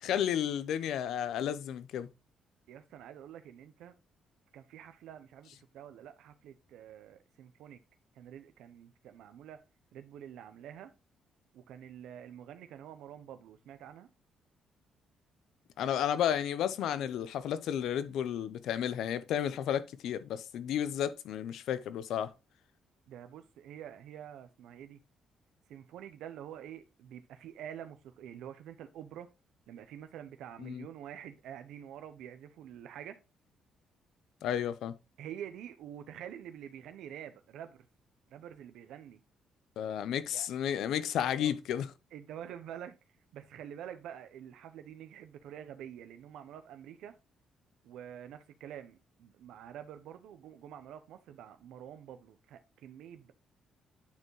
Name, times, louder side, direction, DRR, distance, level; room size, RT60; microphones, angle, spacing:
voice 1, 0.0-2.1 15.8-22.3 30.6-30.9 34.4-34.9 39.8-41.9, left 9 dB, 80° left, 0.7 m, -32 dB
voice 2, 2.7-3.9 4.5-7.8 8.1-9.6 9.9-10.9 11.5-14.1 23.1-25.0 25.7-29.3 29.7-33.2 35.2-37.9 38.3-39.2 40.3-40.5 41.4-41.5 42.1-43.0 43.3-47.2 47.8-53.3, right 10 dB, 85° right, 0.7 m, -47 dB
9.5 x 4.4 x 3.1 m
cardioid pair, 90°, 0 cm